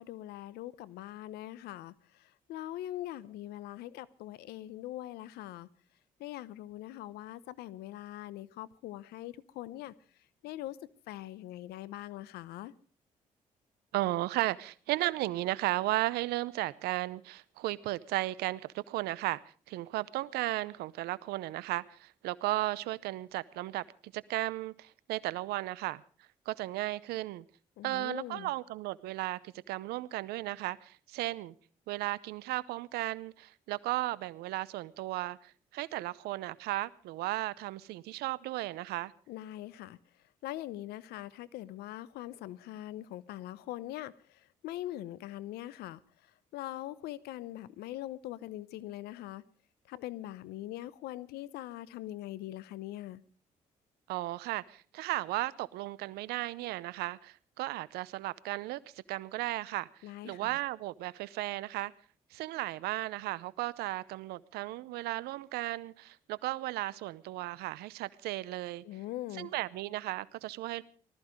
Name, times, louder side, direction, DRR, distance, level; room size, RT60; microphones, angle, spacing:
voice 1, 0.0-1.9 2.2-5.7 6.2-9.9 10.4-10.8 11.1-12.7 27.8-28.5 39.3-40.0 40.4-46.0 46.5-49.4 49.9-53.2 60.0-60.6 68.8-69.5, left 14 dB, 80° left, 0.8 m, -42 dB
voice 2, 13.9-26.0 26.5-27.4 27.8-31.5 31.9-39.1 54.1-58.8 59.1-61.9 62.3-68.8 69.3-70.8, right 17 dB, 80° right, 0.7 m, -35 dB
19.0 x 14.0 x 5.1 m
supercardioid pair, 55°, 16 cm